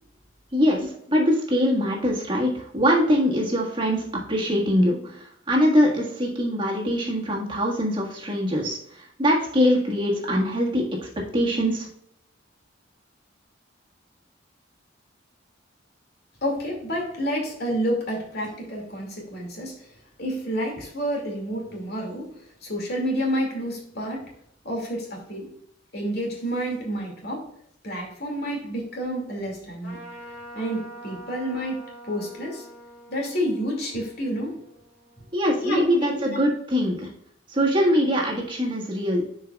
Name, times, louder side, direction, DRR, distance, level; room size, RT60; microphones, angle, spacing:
voice 1, 0.5-11.9 35.3-37.1 37.5-39.2, equal, 25° right, -2 dB, 1.6 m, -23 dB
voice 2, 16.4-19.7 20.2-22.3 22.6-24.3 24.6-25.5 25.9-27.5 27.8-30.0 30.5-32.7 33.1-34.6 35.6-36.2, equal, 55° left, 0 dB, 2.3 m, -29 dB
Trumpet, 29.8-35.6, right 1 dB, 90° left, 2.6 m, -45 dB
11.0 x 4.7 x 2.3 m, 0.69 s
head